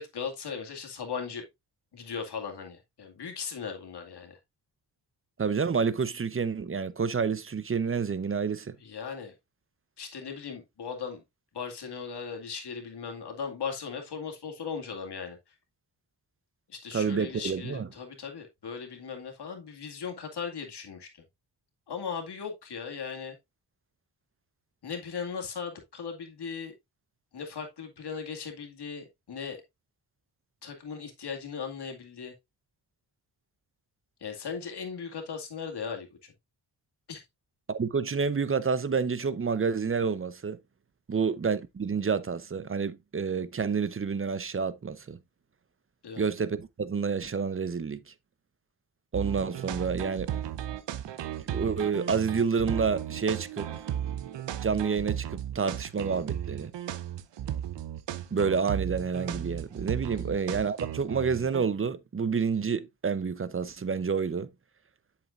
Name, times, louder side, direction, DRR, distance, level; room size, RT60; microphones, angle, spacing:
voice 1, 0.0-1.4 1.9-4.4 8.8-9.3 10.0-11.2 11.5-15.4 16.7-21.1 21.9-23.4 24.8-26.7 27.3-29.6 30.6-32.3 34.2-36.3 37.1-37.2 46.0-46.2 60.1-60.3, left 6 dB, 60° left, 2.3 m, -38 dB
voice 2, 5.4-8.8 16.9-17.9 37.7-40.6 41.1-45.2 46.2-48.1 49.1-50.3 51.5-53.8 54.6-56.7 58.3-64.5, right 5 dB, 30° right, 0.8 m, -29 dB
sound 1, 49.1-61.7, right 10 dB, 70° right, 0.9 m, -35 dB
7.8 x 6.8 x 2.5 m
cardioid pair, 60°, 45 cm